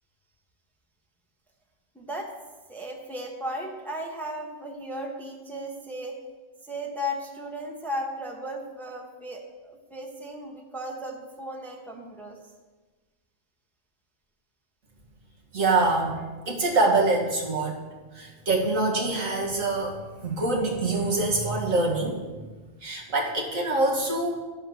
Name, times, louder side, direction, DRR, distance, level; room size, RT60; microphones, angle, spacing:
voice 1, 1.9-2.3 2.7-6.2 6.6-12.4, equal, ahead, 1 dB, 0.9 m, -35 dB
voice 2, 15.5-17.8 18.1-20.0 20.2-22.2 22.8-24.4, right 2 dB, 85° right, -2 dB, 2.1 m, -25 dB
12.0 x 4.4 x 6.2 m, 1.3 s
omnidirectional pair, 1.3 m